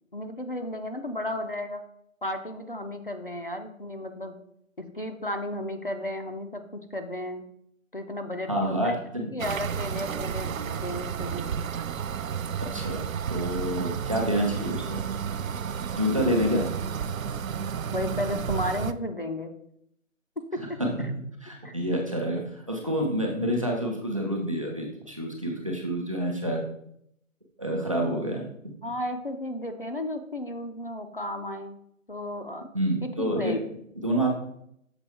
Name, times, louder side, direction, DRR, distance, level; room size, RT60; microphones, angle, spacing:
voice 1, 0.1-1.8 2.2-4.4 4.8-7.4 7.9-9.0 9.3-11.4 16.1-16.4 17.9-19.5 21.6-21.7 28.8-31.8 32.1-32.7 33.0-33.6, left 1 dB, 40° left, 5 dB, 0.6 m, -34 dB
voice 2, 8.5-9.4 12.7-15.0 15.9-16.7 20.8-21.1 21.4-26.6 27.6-28.7 32.7-33.5 34.0-34.3, equal, 25° right, 0 dB, 0.8 m, -28 dB
sound 1, 9.4-18.9, right 7 dB, 75° right, 0.5 m, -32 dB
7.0 x 4.0 x 4.3 m, 0.73 s
figure-of-eight pair, 170°, 41 cm